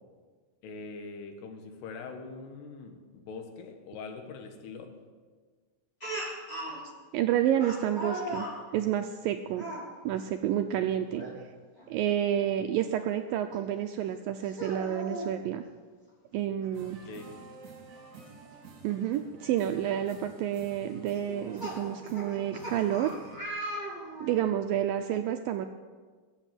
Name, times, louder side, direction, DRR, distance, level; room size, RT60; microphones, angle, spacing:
voice 1, 0.6-4.9 16.7-17.2, left 4 dB, 85° left, 5 dB, 3.6 m, -43 dB
Speech, 6.0-6.8 7.6-8.6 9.5-9.8 11.1-11.3 11.8-11.9 13.5-13.6 14.4-15.3 16.6-16.7 17.1-17.2 19.0-19.1 19.8-20.0 21.1-24.4, right 1 dB, 10° left, 5.7 m, -38 dB
voice 2, 7.1-8.5 8.7-9.7 10.0-11.2 11.9-15.6 16.3-17.0 18.8-23.1 24.2-25.7, right 11 dB, 85° right, 7 dB, 2.0 m, -29 dB
sound 1, 16.7-23.4, right 4 dB, 50° right, 4.5 m, -50 dB
21.0 x 8.1 x 7.6 m, 1.5 s
omnidirectional pair, 4.7 m